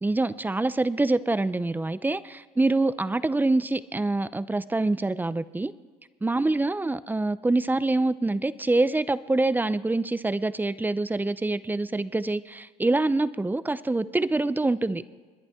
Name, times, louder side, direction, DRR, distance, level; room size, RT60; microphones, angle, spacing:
voice 1, 0.0-5.7 6.2-15.0, right 2 dB, 10° right, 16 dB, 0.6 m, -25 dB
26.5 x 10.5 x 3.6 m, 1.5 s
supercardioid pair, 85°, 17 cm